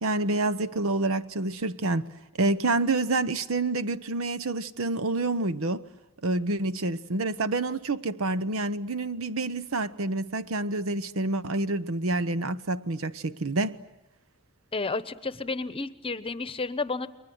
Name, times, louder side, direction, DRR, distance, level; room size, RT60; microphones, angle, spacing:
voice 1, 0.0-2.1 2.4-5.8 6.2-13.8, right 2 dB, 70° right, 0.9 m, -28 dB
voice 2, 14.7-17.1, left 3 dB, 25° left, 1.0 m, -31 dB
30.0 x 22.5 x 7.9 m
head